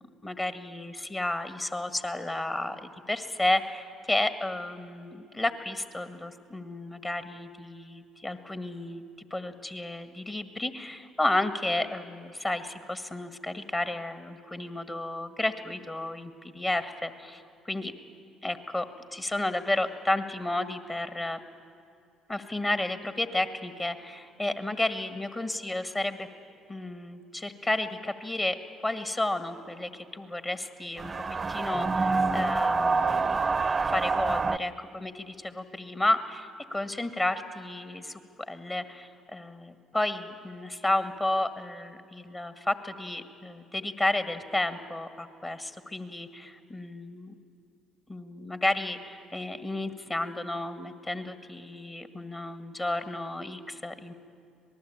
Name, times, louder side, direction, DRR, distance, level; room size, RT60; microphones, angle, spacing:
voice 1, 0.2-9.0 9.3-17.9 18.4-18.9 19.1-21.4 22.3-26.3 26.7-28.6 28.8-31.1 31.5-33.4 33.8-38.2 38.5-47.3 48.1-54.1, left 2 dB, 25° left, 10 dB, 1.8 m, -32 dB
sound 1, 31.0-34.6, right 4 dB, 30° right, 0.8 m, -26 dB
26.0 x 19.0 x 8.8 m, 2.6 s
hypercardioid pair, 55°, 0 cm